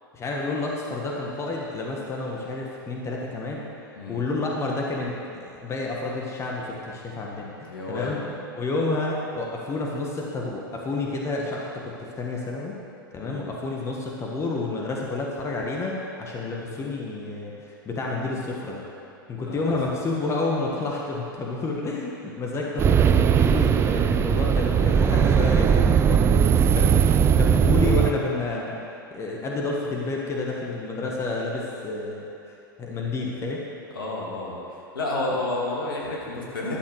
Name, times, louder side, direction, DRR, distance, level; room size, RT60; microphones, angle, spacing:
voice 1, 0.1-12.7 13.1-17.5 17.8-18.8 19.3-33.6, left 3 dB, 25° left, -2 dB, 1.6 m, -30 dB
voice 2, 7.6-8.1 13.2-13.5 19.5-19.8 33.9-34.6 34.9-36.8, left 2 dB, 70° left, -4 dB, 2.7 m, -30 dB
sound 1, 22.8-28.1, right 7 dB, 20° right, 0.5 m, -19 dB
12.0 x 7.3 x 6.3 m, 2.7 s
figure-of-eight pair, 90°, 12 cm